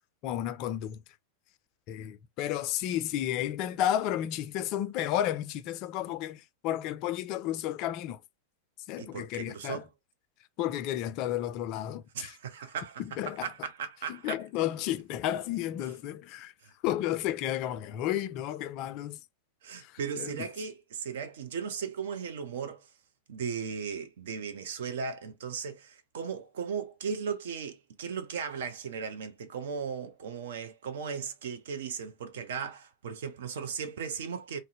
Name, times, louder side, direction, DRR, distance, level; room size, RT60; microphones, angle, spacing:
voice 1, 0.2-1.0 1.9-8.2 8.9-9.8 10.6-12.3 13.0-13.5 14.1-16.5 16.8-19.2 19.8-20.5, left 12 dB, 40° left, 0.4 m, -32 dB
voice 2, 9.0-9.9 12.1-14.4 16.6-16.7 19.6-22.9 23.3-34.6, right 6 dB, 60° right, 0.5 m, -37 dB
2.5 x 2.1 x 3.9 m
figure-of-eight pair, 90°, 0 cm